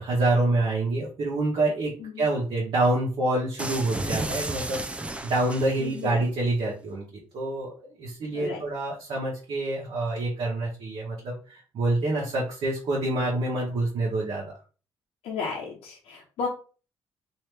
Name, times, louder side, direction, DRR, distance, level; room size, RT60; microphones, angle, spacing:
voice 1, 0.0-4.8 5.2-7.0 7.3-7.7 8.0-14.5, right 2 dB, 65° right, -4 dB, 1.1 m, -26 dB
sound 1, 3.6-6.0, right 2 dB, 10° right, 0.4 m, -33 dB
voice 2, 5.8-6.1 8.3-8.6 15.2-16.5, left 5 dB, 80° left, -3 dB, 0.8 m, -33 dB
3.0 x 2.7 x 3.3 m, 0.37 s
cardioid pair, 85°, 10 cm